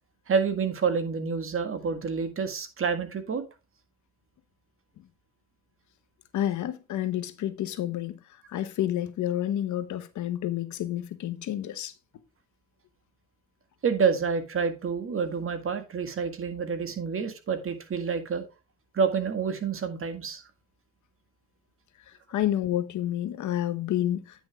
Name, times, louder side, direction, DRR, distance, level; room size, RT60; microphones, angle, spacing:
voice 1, 0.3-3.4 13.8-18.4 18.9-20.4, right 6 dB, 45° right, 1.8 m, -28 dB
voice 2, 6.3-11.9 22.1-24.5, left 12 dB, 75° left, 1.1 m, -30 dB
9.6 x 6.3 x 3.5 m
cardioid pair, 90°, 30 cm